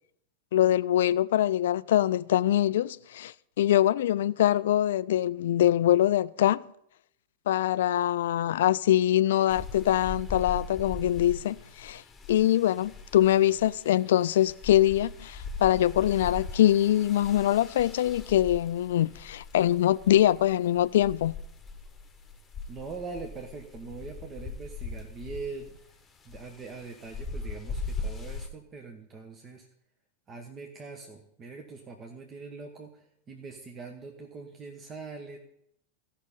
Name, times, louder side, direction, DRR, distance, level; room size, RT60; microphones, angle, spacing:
voice 1, 0.5-6.6 7.5-12.0 12.3-21.3, left 12 dB, 60° left, 0.3 m, -24 dB
sound 1, 9.5-28.5, left 3 dB, 15° left, 1.3 m, -40 dB
voice 2, 22.7-25.9 26.2-29.7 30.3-35.4, right 4 dB, 25° right, 1.1 m, -42 dB
15.0 x 5.8 x 5.3 m
figure-of-eight pair, 90°, 0 cm